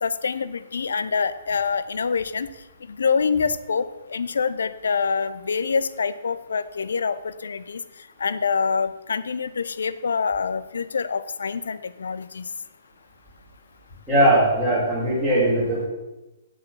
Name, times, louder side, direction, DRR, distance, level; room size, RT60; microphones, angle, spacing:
voice 1, 0.0-2.5 2.9-7.8 8.2-12.5, left 5 dB, 65° left, 14 dB, 0.5 m, -26 dB
voice 2, 14.1-15.9, right 1 dB, ahead, -13 dB, 3.4 m, -19 dB
7.8 x 6.6 x 5.7 m, 1.1 s
figure-of-eight pair, 120°, 0 cm